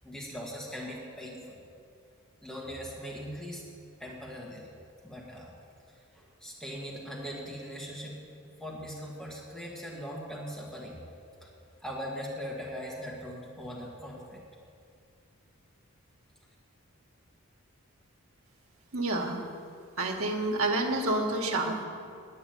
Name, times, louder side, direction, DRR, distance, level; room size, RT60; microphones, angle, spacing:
voice 1, 0.0-1.6 2.4-3.7 4.0-4.7 5.0-5.5 6.1-8.2 8.6-11.0 11.4-11.5 11.8-14.4, equal, 5° left, -4 dB, 1.6 m, -40 dB
voice 2, 18.9-19.4 20.0-21.8, right 2 dB, 70° right, 1 dB, 1.6 m, -28 dB
9.6 x 8.8 x 9.2 m, 2.4 s
head